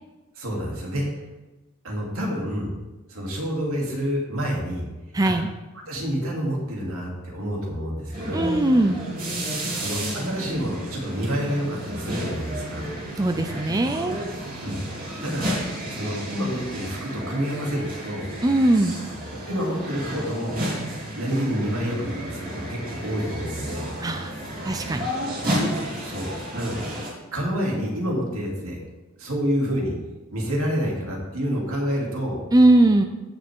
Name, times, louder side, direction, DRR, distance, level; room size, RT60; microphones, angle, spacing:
voice 1, 0.3-1.2 1.8-2.7 3.1-4.9 5.2-5.3 5.9-8.5 9.8-12.9 14.6-14.8 15.2-15.5 15.9-18.3 19.3-20.6 21.1-23.9 26.0-26.8 27.3-28.8 29.2-29.9 30.3-32.4, equal, 80° right, -2 dB, 3.0 m, -28 dB
voice 2, 5.1-5.5 8.3-9.0 13.2-14.2 18.4-19.0 24.0-24.3 24.6-25.1 32.5-33.0, right 1 dB, 15° right, 7 dB, 0.5 m, -19 dB
sound 1, 8.1-27.1, equal, 40° right, 3.0 m, -32 dB
16.0 x 6.4 x 3.7 m, 1.1 s
head